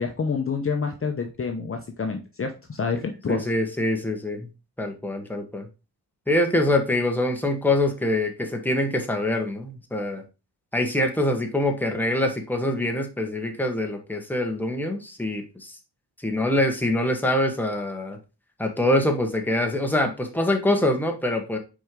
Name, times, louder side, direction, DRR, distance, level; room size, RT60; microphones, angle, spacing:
voice 1, 0.0-3.4, left 5 dB, 35° left, 4 dB, 0.8 m, -28 dB
voice 2, 3.3-4.5 4.8-5.7 6.3-10.2 10.7-15.8 16.2-18.2 18.6-21.6, left 1 dB, 5° left, 3 dB, 1.3 m, -24 dB
6.1 x 4.6 x 3.7 m, 0.30 s
wide cardioid pair, 115°, 39 cm